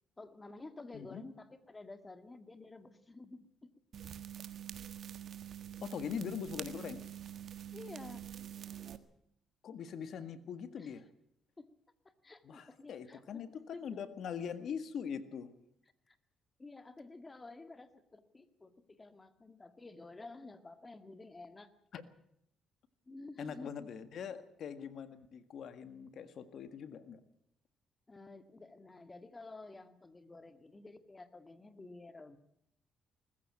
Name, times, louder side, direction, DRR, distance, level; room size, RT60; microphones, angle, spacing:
voice 1, 0.2-3.7 7.7-8.3 10.8-10.9 11.6-11.7 12.0-13.4 13.7-13.8 16.1-16.2 16.6-21.7 23.1-23.9 28.1-32.4, left 3 dB, 25° left, 10 dB, 1.9 m, -51 dB
sound 1, 3.9-9.0, right 10 dB, 60° right, 1.5 m, -46 dB
voice 2, 5.8-7.0 9.6-11.0 12.4-15.5 21.9-22.0 23.4-27.2, left 7 dB, 65° left, 11 dB, 1.7 m, -42 dB
20.5 x 14.5 x 8.8 m, 0.75 s
cardioid pair, 90°, 0 cm